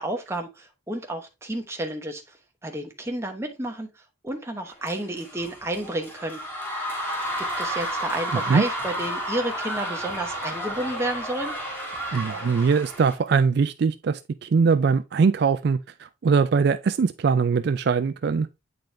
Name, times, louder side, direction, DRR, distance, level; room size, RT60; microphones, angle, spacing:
voice 1, 0.0-2.4 2.6-6.4 7.4-11.5, right 1 dB, 15° right, 1.0 m, -31 dB
sound 1, 4.8-13.1, equal, 10° left, 1.7 m, -31 dB
voice 2, 12.1-18.5, right 5 dB, 55° right, 0.3 m, -22 dB
8.9 x 3.9 x 3.3 m
head